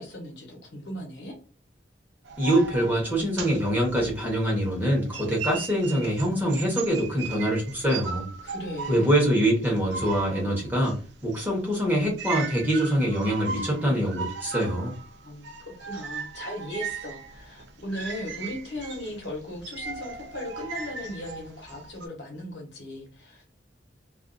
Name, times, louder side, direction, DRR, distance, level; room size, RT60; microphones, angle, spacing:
voice 1, 0.0-1.4 8.4-9.2 15.2-23.5, left 1 dB, 70° left, 0 dB, 0.9 m, -37 dB
sound 1, 2.3-4.8 5.1-22.1, right 5 dB, 75° right, 0.5 m, -38 dB
voice 2, 2.4-8.3 8.9-11.0 11.2-14.9, right 1 dB, 10° right, -2 dB, 0.9 m, -24 dB
2.4 x 2.3 x 2.5 m, 0.38 s
head